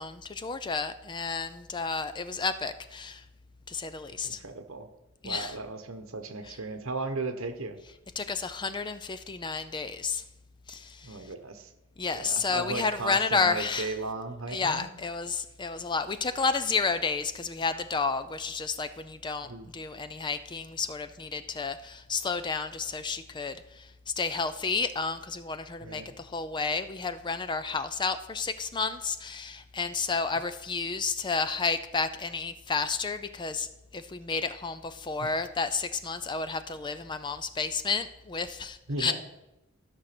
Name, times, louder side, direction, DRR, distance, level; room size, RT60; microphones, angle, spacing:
voice 1, 0.0-3.2 3.7-4.4 5.2-5.6 6.5-6.6 8.2-10.2 10.7-11.2 12.0-13.9 14.5-23.9 24.2-33.7 33.9-39.1, left 4 dB, 20° left, 11 dB, 0.4 m, -31 dB
voice 2, 4.2-4.9 5.2-7.8 11.0-11.7 12.1-14.9 19.4-19.7 25.8-26.1 30.3-30.5 38.9-39.1, right 3 dB, 65° right, 8 dB, 1.2 m, -36 dB
13.0 x 6.2 x 6.0 m, 0.95 s
head